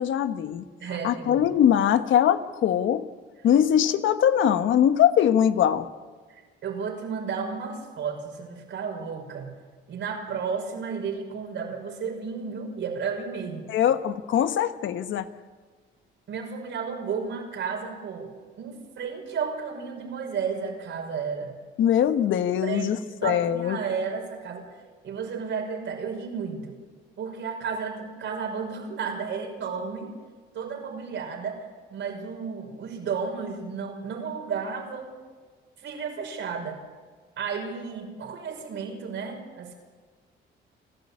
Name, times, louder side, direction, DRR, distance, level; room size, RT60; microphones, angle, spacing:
voice 1, 0.0-0.6 1.0-3.1 3.4-5.9 13.7-15.3 21.8-23.8, left 9 dB, 75° left, 10 dB, 1.3 m, -22 dB
voice 2, 0.8-1.5 6.3-9.5 9.9-13.7 16.3-21.5 22.6-24.7 25.0-26.8 27.2-30.1 30.5-35.1 35.8-36.8 37.4-39.7, right 6 dB, 70° right, 2 dB, 5.9 m, -33 dB
29.5 x 13.0 x 8.7 m, 1.5 s
cardioid pair, 90°, 20 cm